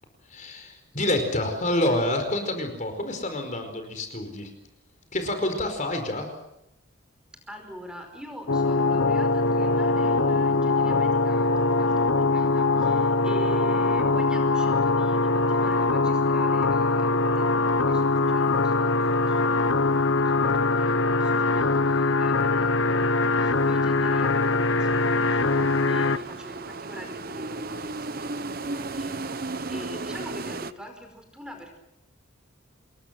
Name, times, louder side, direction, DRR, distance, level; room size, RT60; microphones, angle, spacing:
voice 1, 0.3-4.5 5.1-6.3, left 1 dB, 40° left, 6 dB, 4.8 m, -27 dB
voice 2, 7.5-31.8, equal, 5° right, 5 dB, 5.1 m, -43 dB
sound 1, 8.5-26.2, left 3 dB, 75° left, 1.0 m, -22 dB
sound 2, 17.8-30.7, right 3 dB, 45° right, 1.0 m, -38 dB
27.5 x 21.5 x 7.7 m, 0.84 s
head